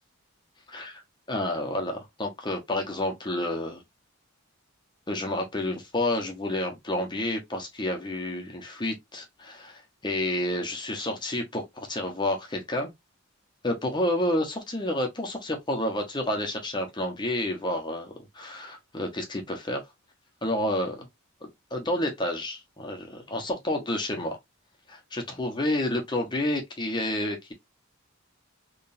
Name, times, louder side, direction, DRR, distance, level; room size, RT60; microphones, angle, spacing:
voice 1, 1.3-3.8 5.1-12.9 13.6-19.8 20.4-21.1 21.7-24.4 24.9-27.5, left 1 dB, 20° left, 1.2 m, -30 dB
3.7 x 3.4 x 2.7 m
head